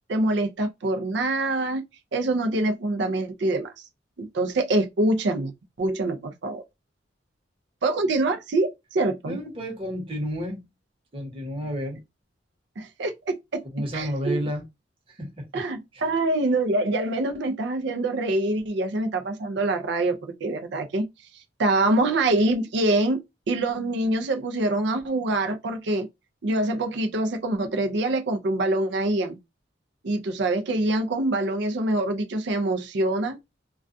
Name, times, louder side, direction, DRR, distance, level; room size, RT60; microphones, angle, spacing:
voice 1, 0.1-1.8 2.1-3.7 4.2-5.5 5.8-6.6 7.8-9.4 12.8-13.6 13.9-14.4 15.5-21.1 21.6-23.2 23.5-26.1 26.4-29.4 30.0-33.4, right 2 dB, 65° right, 0.4 m, -25 dB
voice 2, 9.3-10.6 11.1-12.0 13.7-14.7 15.1-15.6 15.9-16.0, equal, 30° right, 1.0 m, -31 dB
2.2 x 2.2 x 2.5 m
head